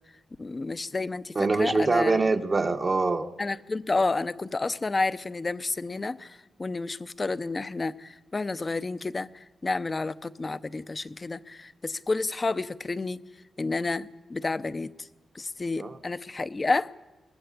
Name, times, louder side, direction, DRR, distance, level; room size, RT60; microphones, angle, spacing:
voice 1, 0.4-2.1 3.4-13.2 13.6-15.1 15.3-16.9, left 3 dB, 30° left, 14 dB, 0.7 m, -30 dB
voice 2, 1.3-3.3 15.8-16.0, right 3 dB, 35° right, 3 dB, 1.0 m, -24 dB
22.5 x 20.0 x 8.3 m, 1.1 s
wide cardioid pair, 120°, 0 cm